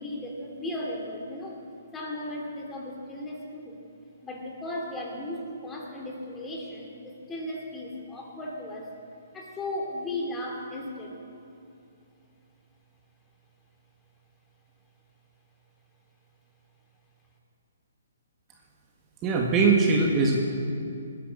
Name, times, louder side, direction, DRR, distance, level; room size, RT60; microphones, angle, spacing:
voice 1, 0.0-1.6 1.9-3.8 4.2-8.9 9.3-11.2, left 1 dB, 15° left, -1 dB, 2.7 m, -36 dB
voice 2, 19.2-20.4, right 4 dB, 25° right, 0 dB, 1.7 m, -21 dB
19.5 x 10.5 x 6.3 m, 2.6 s
hypercardioid pair, 135°, 0 cm